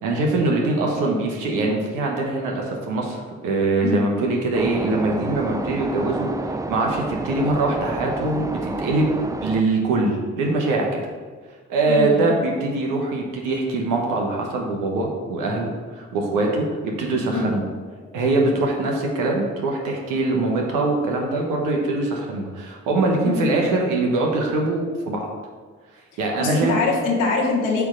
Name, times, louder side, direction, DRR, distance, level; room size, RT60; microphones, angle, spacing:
voice 1, 0.0-10.9 11.7-17.6 18.1-25.3 26.2-26.7, right 2 dB, 90° right, 0 dB, 1.1 m, -23 dB
sound 1, 4.5-9.6, right 2 dB, 10° right, 0.4 m, -30 dB
voice 2, 11.9-12.3 17.3-17.5 23.2-23.4 26.4-27.9, left 3 dB, 90° left, -4 dB, 1.3 m, -23 dB
8.2 x 3.4 x 5.0 m, 1.5 s
supercardioid pair, 45°, 31 cm